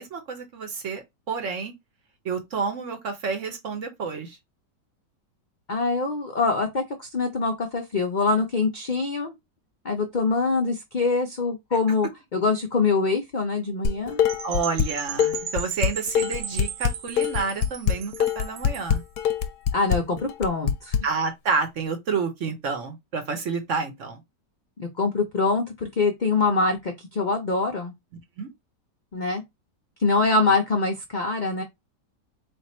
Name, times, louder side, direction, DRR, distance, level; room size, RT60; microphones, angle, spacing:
voice 1, 0.0-1.7 2.2-4.4 14.4-19.0 21.0-24.2 28.4-28.5, right 5 dB, 55° right, 1.0 m, -29 dB
voice 2, 5.7-9.3 9.8-14.2 19.7-21.0 24.8-27.9 29.1-29.4 30.0-31.6, left 3 dB, 85° left, 0.4 m, -24 dB
Dishes pots and pans, 13.8-14.9 15.2-21.0, left 8 dB, 70° left, 1.0 m, -23 dB
Percussion / Wind chime, 14.3-19.0, right 10 dB, 80° right, 1.2 m, -36 dB
3.5 x 2.5 x 4.2 m
omnidirectional pair, 1.9 m